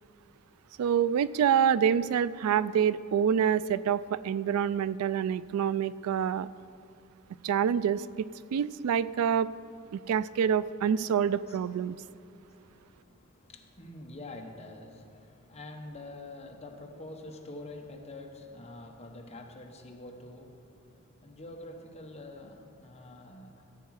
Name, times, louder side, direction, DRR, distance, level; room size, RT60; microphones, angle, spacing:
voice 1, 0.8-6.5 7.4-8.3 8.5-9.5 10.1-11.9, right 8 dB, 85° right, 18 dB, 0.3 m, -26 dB
voice 2, 10.9-11.6 12.0-12.1 12.5-23.8, left 2 dB, 30° left, 2 dB, 1.1 m, -46 dB
14.5 x 8.3 x 4.8 m, 2.6 s
head